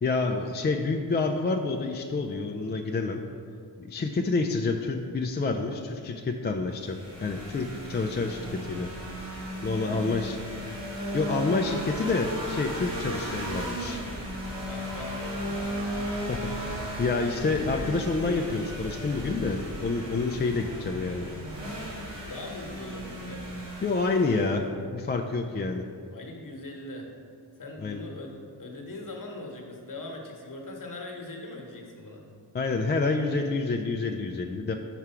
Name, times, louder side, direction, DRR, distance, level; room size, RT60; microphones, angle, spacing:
voice 1, 0.0-3.2 3.8-8.9 9.6-10.4 11.1-14.0 16.3-21.3 23.8-24.6 24.9-25.8 27.8-28.0 32.5-34.7, left 3 dB, 25° left, 3 dB, 0.4 m, -28 dB
sound 1, 6.7-24.6, equal, 85° right, 1.6 m, -35 dB
voice 2, 9.6-10.8 14.6-15.8 16.2-16.3 20.5-20.6 22.3-23.5 26.1-27.1 27.6-32.3, left 2 dB, 50° left, 1 dB, 1.2 m, -41 dB
4.9 x 4.6 x 5.7 m, 2.3 s
cardioid pair, 65°, 42 cm